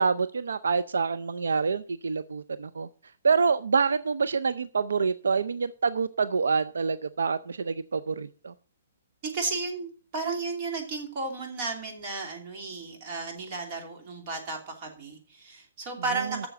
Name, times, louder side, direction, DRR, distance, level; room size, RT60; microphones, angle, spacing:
voice 1, 0.0-2.9 3.2-8.5, right 5 dB, 90° right, 14 dB, 0.5 m, -26 dB
voice 2, 9.2-16.5, right 3 dB, 35° right, 2 dB, 2.8 m, -33 dB
7.0 x 6.9 x 7.5 m, 0.40 s
hypercardioid pair, 155°, 0 cm